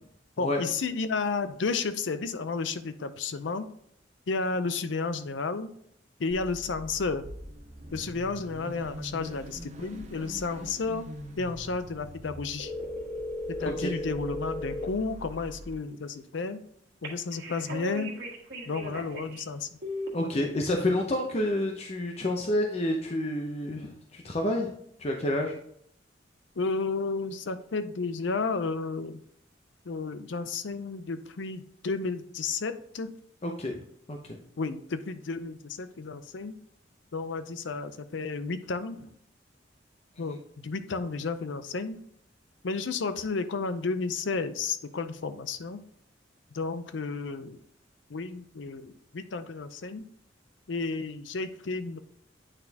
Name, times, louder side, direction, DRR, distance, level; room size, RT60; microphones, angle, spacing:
voice 1, 0.4-3.7 4.3-5.7 6.2-7.3 7.9-11.1 11.4-12.7 13.5-16.6 17.0-18.1 18.6-19.7 26.6-29.2 29.9-33.1 34.6-36.6 37.1-39.1 40.2-42.0 42.6-45.8 46.5-47.6 48.1-50.0 50.7-52.0, left 4 dB, 80° left, 11 dB, 0.6 m, -32 dB
Car / Idling / Accelerating revving vroom, 6.3-15.7, equal, 40° right, 0.7 m, -44 dB
sound 1, 12.6-14.8 17.0-19.4 19.8-20.1, left 1 dB, 60° right, 1.5 m, -36 dB
voice 2, 20.1-24.7 25.0-25.5 33.4-33.8 34.1-34.4, left 1 dB, 35° left, 2 dB, 0.6 m, -29 dB
8.9 x 4.2 x 2.8 m, 0.67 s
head